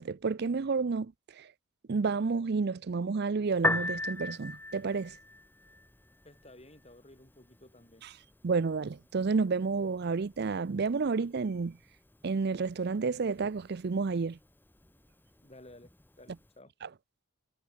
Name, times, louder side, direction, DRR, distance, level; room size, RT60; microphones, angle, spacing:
voice 1, 0.0-1.5 1.9-5.2 8.4-11.8 12.2-14.4 16.8-16.9, right 4 dB, 45° right, 0.5 m, -30 dB
Piano, 3.5-16.5, left 2 dB, 10° left, 1.4 m, -40 dB
voice 2, 6.2-8.1 15.4-16.7, left 1 dB, 25° left, 4.5 m, -54 dB
head